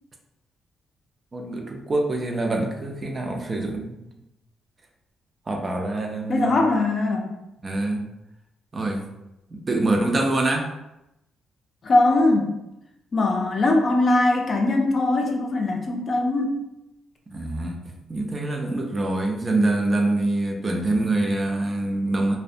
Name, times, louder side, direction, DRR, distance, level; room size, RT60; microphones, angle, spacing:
voice 1, 1.3-4.0 5.5-6.5 7.6-8.1 8.7-9.0 9.5-10.7 17.3-17.8 18.1-22.4, right 2 dB, 30° right, 2 dB, 0.4 m, -25 dB
voice 2, 6.3-7.3 11.8-12.5 13.1-16.6, left 2 dB, 40° left, 1 dB, 0.4 m, -21 dB
2.5 x 2.1 x 2.4 m, 0.90 s
cardioid pair, 95°, 0 cm